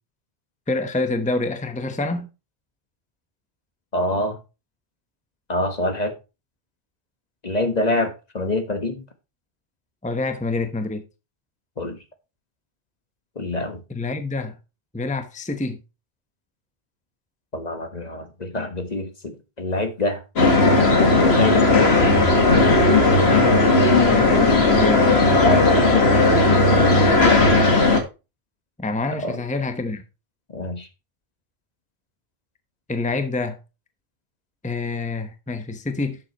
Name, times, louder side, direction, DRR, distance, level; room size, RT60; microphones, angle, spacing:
voice 1, 0.7-2.3 10.0-11.0 13.9-14.5 14.9-15.8 24.0-25.2 28.8-30.0 32.9-33.6 34.6-36.2, left 3 dB, 5° left, 0.9 m, -26 dB
voice 2, 3.9-4.4 5.5-6.1 7.4-9.0 11.8-12.0 13.3-13.8 17.5-20.2 20.9-21.7 25.3-27.4 29.2-29.4 30.5-30.9, left 2 dB, 40° left, 1.4 m, -26 dB
sound 1, 20.4-28.0, left 2 dB, 75° left, 1.9 m, -16 dB
11.0 x 7.6 x 2.9 m
omnidirectional pair, 1.1 m